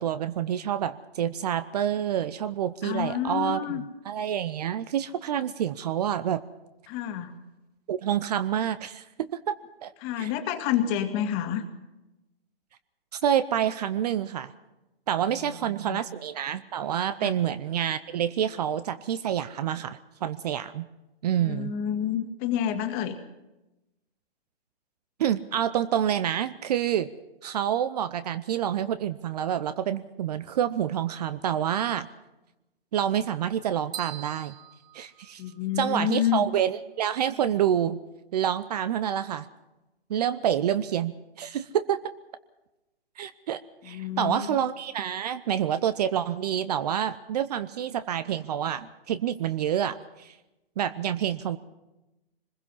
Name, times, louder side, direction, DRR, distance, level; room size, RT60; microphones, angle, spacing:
voice 1, 0.0-6.4 7.9-9.6 9.8-9.9 10.2-10.3 13.1-14.5 15.1-20.9 21.2-21.7 25.2-27.1 27.4-32.1 32.9-34.5 34.9-35.4 35.8-38.0 38.3-39.5 40.1-42.1 43.2-50.4 50.8-51.6, right 10 dB, 40° right, 14 dB, 0.7 m, -28 dB
voice 2, 2.8-3.8 6.9-7.3 10.0-11.6 15.3-16.0 17.2-17.3 21.4-23.2 35.4-36.5 43.8-44.6, left 10 dB, 30° left, 6 dB, 2.0 m, -29 dB
sound 1, 33.9-35.9, right 10 dB, 15° right, 1.1 m, -42 dB
23.5 x 21.0 x 5.7 m, 0.99 s
figure-of-eight pair, 130°, 31 cm